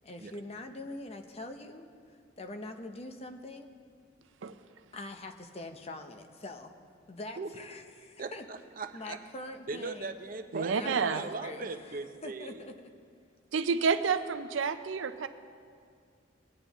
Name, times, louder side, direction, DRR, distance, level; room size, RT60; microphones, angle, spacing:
voice 1, 0.0-3.7 4.9-6.7 7.1-8.4 8.9-10.1 10.7-12.7, left 2 dB, 35° left, 6 dB, 0.7 m, -43 dB
voice 2, 8.2-9.2 9.7-12.6, right 3 dB, 45° right, 8 dB, 0.6 m, -39 dB
voice 3, 10.5-11.2 13.5-15.3, right 5 dB, 90° right, 11 dB, 0.5 m, -29 dB
20.0 x 9.2 x 3.0 m, 2.2 s
head